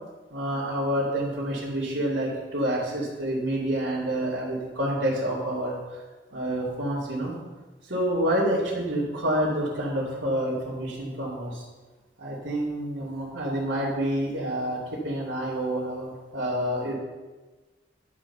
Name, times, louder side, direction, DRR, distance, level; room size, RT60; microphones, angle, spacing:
voice 1, 0.3-7.3 7.8-11.6 12.2-16.9, right 1 dB, 75° right, -10 dB, 2.7 m, -28 dB
11.0 x 5.3 x 7.2 m, 1.3 s
head